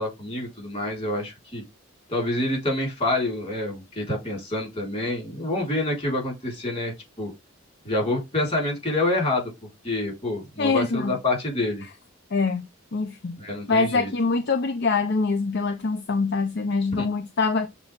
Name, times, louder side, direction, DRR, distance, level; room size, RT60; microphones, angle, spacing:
voice 1, 0.0-1.6 2.1-7.3 7.8-9.5 9.8-11.8 13.4-14.1 17.0-17.1, left 2 dB, 30° left, 4.2 m, -27 dB
voice 2, 10.6-11.2 12.3-12.7 12.9-13.4 13.7-17.7, left 4 dB, 60° left, 0.6 m, -24 dB
6.9 x 4.0 x 3.5 m
head